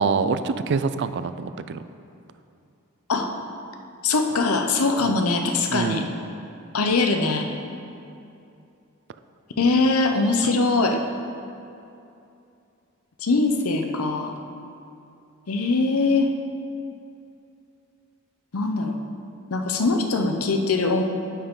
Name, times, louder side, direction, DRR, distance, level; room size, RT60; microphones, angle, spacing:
voice 1, 0.0-1.8 5.0-5.1 5.7-6.0, right 5 dB, 55° right, 12 dB, 0.4 m, -25 dB
voice 2, 4.0-6.1 6.7-7.5 9.6-11.0 13.2-14.3 15.5-16.3 18.5-19.0 19.5-21.0, left 3 dB, 90° left, 4 dB, 0.8 m, -22 dB
10.0 x 7.3 x 3.8 m, 2.6 s
head